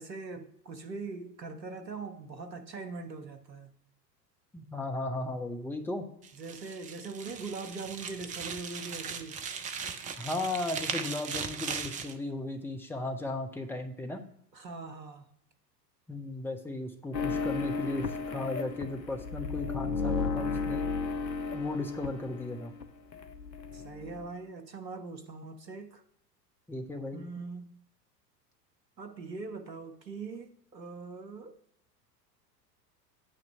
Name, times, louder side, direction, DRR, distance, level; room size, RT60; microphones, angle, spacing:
voice 1, 0.0-3.7 6.3-9.4 14.5-15.3 23.7-26.0 27.1-27.8 29.0-31.6, right 4 dB, 85° right, 1.1 m, -42 dB
voice 2, 4.5-6.1 10.2-14.2 16.1-20.9 21.5-22.7 26.7-27.2, left 2 dB, 5° left, 0.9 m, -36 dB
sound 1, 6.2-12.2, right 6 dB, 15° right, 0.4 m, -38 dB
sound 2, 17.1-22.9 23.1-24.3, left 4 dB, 85° left, 0.8 m, -34 dB
9.0 x 3.0 x 5.7 m
figure-of-eight pair, 85°, 49 cm